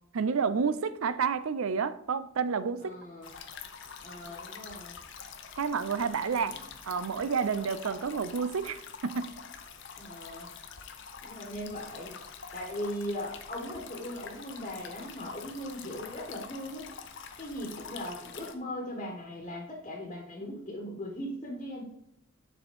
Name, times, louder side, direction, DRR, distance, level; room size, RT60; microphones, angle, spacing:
voice 1, 0.1-3.0 5.6-6.5 6.8-9.3, right 6 dB, 70° right, 0.5 m, -30 dB
voice 2, 2.8-3.3 4.0-5.0 6.3-6.6 10.0-10.5 11.2-12.1 12.5-16.9 17.4-21.8, equal, 30° left, 1.4 m, -39 dB
sound 1, 3.2-18.5, left 6 dB, 55° left, 0.8 m, -46 dB
6.9 x 4.3 x 5.3 m
head